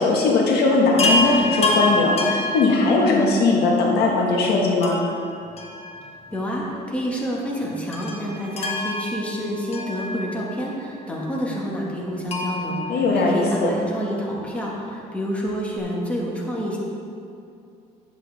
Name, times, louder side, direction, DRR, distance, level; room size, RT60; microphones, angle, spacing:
voice 1, 0.0-5.0 12.9-13.7, left 3 dB, 70° left, -2 dB, 1.6 m, -19 dB
Chime, 1.0-3.4 4.8-6.4 6.6-6.7 7.9-10.6 12.3-13.9 15.5-15.6 15.8-15.9, left 2 dB, 35° left, 1.5 m, -27 dB
voice 2, 6.3-16.8, equal, 5° left, -4 dB, 2.0 m, -28 dB
10.0 x 7.9 x 3.7 m, 2.5 s
cardioid pair, 110°, 17 cm